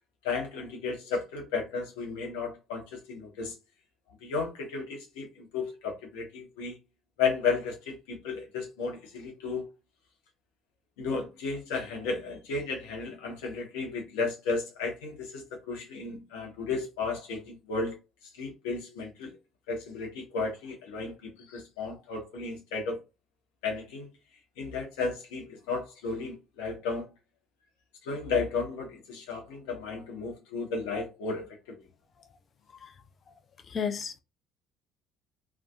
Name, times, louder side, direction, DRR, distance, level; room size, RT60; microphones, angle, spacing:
voice 1, 0.2-3.6 4.2-6.8 7.2-9.7 11.0-18.0 18.4-19.3 19.7-23.0 23.6-24.1 24.6-27.1 28.0-31.8, left 4 dB, 70° left, 0.9 m, -33 dB
voice 2, 33.7-34.2, left 6 dB, 40° left, 0.4 m, -33 dB
2.7 x 2.1 x 2.4 m
hypercardioid pair, 55°, 0 cm